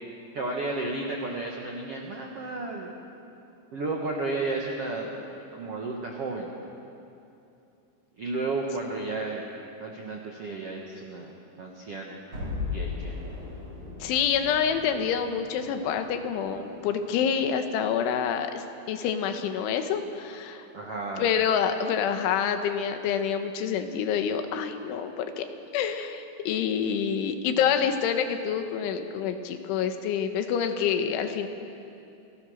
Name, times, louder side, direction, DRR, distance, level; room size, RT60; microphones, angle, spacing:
voice 1, 0.3-2.9 3.7-6.5 8.2-9.4 9.8-11.3 11.6-12.2 12.7-13.2 20.7-21.3, right 2 dB, 70° right, 0 dB, 1.4 m, -33 dB
sound 1, 12.3-17.4, left 4 dB, 35° right, 7.4 m, -38 dB
voice 2, 14.0-20.7 21.2-25.5 25.7-31.5, left 7 dB, 90° left, 7 dB, 3.7 m, -27 dB
28.0 x 18.5 x 6.5 m, 2.7 s
omnidirectional pair, 5.3 m